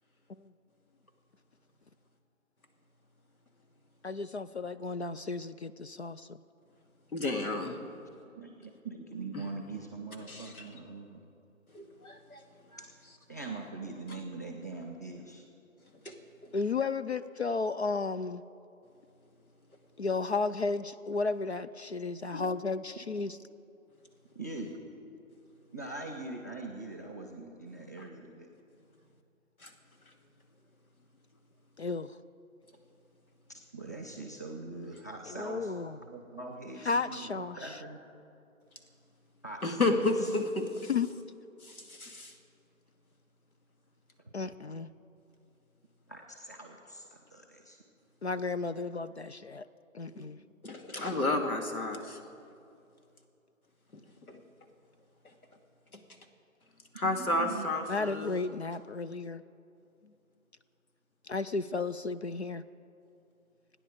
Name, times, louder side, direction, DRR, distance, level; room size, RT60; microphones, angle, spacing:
voice 1, 4.0-6.4 16.5-18.4 20.0-23.4 31.8-32.2 35.3-36.0 36.8-37.8 40.9-41.1 44.3-44.9 48.2-49.7 49.9-50.4 57.9-59.4 61.2-62.6, left 4 dB, 50° left, 13 dB, 0.5 m, -33 dB
voice 2, 7.1-7.8 9.3-9.5 10.3-10.7 11.7-12.4 12.7-12.8 16.0-16.2 29.6-29.7 39.6-40.9 41.6-42.3 50.1-50.3 50.6-52.2 54.3-54.4 56.9-58.3, left 2 dB, 85° left, 4 dB, 2.5 m, -32 dB
voice 3, 8.4-11.2 12.8-12.9 13.3-15.4 24.3-24.7 25.7-28.5 33.5-35.7 36.0-37.3 37.6-38.0 39.4-40.0 46.1-47.8 57.0-57.7, right 3 dB, 15° left, 0 dB, 0.6 m, -42 dB
29.0 x 9.9 x 5.0 m, 2.6 s
figure-of-eight pair, 155°, 42 cm